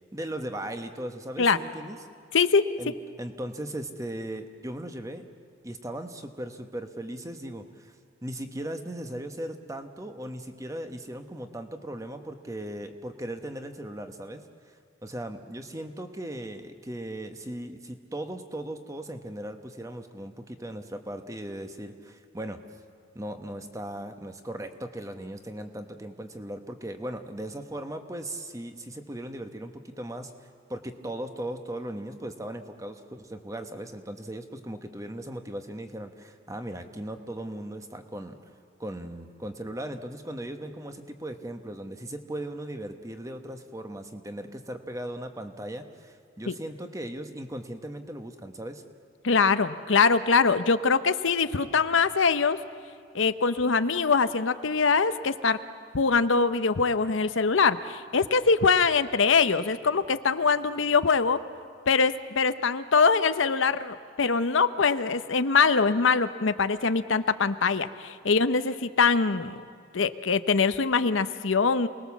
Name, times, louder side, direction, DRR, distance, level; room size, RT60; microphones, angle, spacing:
voice 1, 0.0-2.0 2.8-5.2 5.6-7.9 8.2-14.8 15.0-22.6 23.1-30.3 30.7-38.4 38.8-48.8, right 1 dB, 15° right, 6 dB, 1.2 m, -38 dB
voice 2, 2.3-2.6 46.5-46.6 49.2-52.6 53.1-55.6 55.9-61.4 61.9-69.6 69.9-71.9, left 5 dB, 80° left, 11 dB, 0.8 m, -23 dB
28.5 x 20.0 x 7.2 m, 2.2 s
head